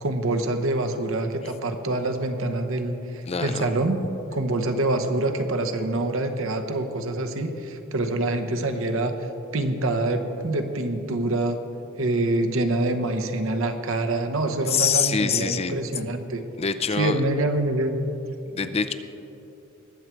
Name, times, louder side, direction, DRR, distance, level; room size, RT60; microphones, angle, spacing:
voice 1, 0.0-4.0 4.3-9.3 9.5-11.6 12.0-16.4 16.9-18.0, right 2 dB, 65° right, 6 dB, 1.0 m, -26 dB
voice 2, 3.3-3.7 14.7-15.7 16.6-17.2 18.5-18.9, left 6 dB, 30° left, 10 dB, 0.5 m, -24 dB
20.5 x 7.5 x 4.5 m, 3.0 s
head